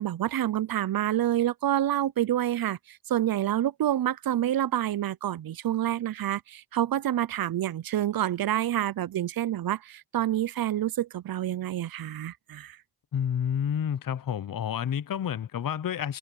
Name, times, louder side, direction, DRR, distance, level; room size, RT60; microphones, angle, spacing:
voice 1, 0.0-12.8, right 12 dB, 70° right, 0.6 m, -28 dB
voice 2, 13.1-16.2, left 8 dB, 60° left, 0.7 m, -29 dB
cardioid pair, 60°, 37 cm